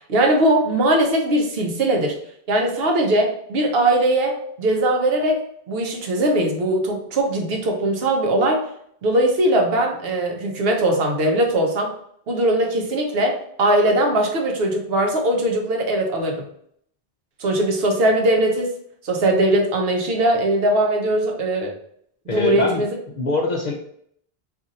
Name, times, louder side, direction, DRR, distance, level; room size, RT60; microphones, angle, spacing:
voice 1, 0.1-2.1 2.5-5.4 5.7-8.6 9.0-11.9 12.3-16.4 17.4-18.7 19.0-21.7 22.3-22.9, right 1 dB, 65° right, 2 dB, 0.9 m, -20 dB
voice 2, 22.3-22.8 23.2-23.7, left 2 dB, 55° left, 0 dB, 0.5 m, -23 dB
2.7 x 2.5 x 3.9 m, 0.68 s
omnidirectional pair, 1.1 m